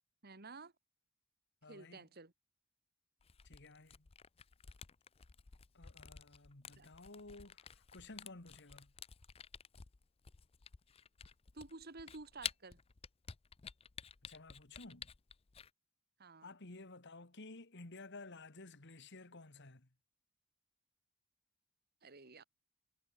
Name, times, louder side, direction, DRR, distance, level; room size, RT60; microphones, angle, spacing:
voice 1, 0.2-0.7 1.7-2.3 6.8-6.9 11.5-12.8 16.2-16.5 22.0-22.4, right 3 dB, 50° right, 2.1 m, -52 dB
voice 2, 1.6-2.0 3.4-4.1 5.7-8.9 14.2-15.1 16.4-19.9, left 2 dB, 55° left, 2.1 m, -54 dB
Camera, 3.2-15.7, left 7 dB, 25° left, 0.5 m, -51 dB
head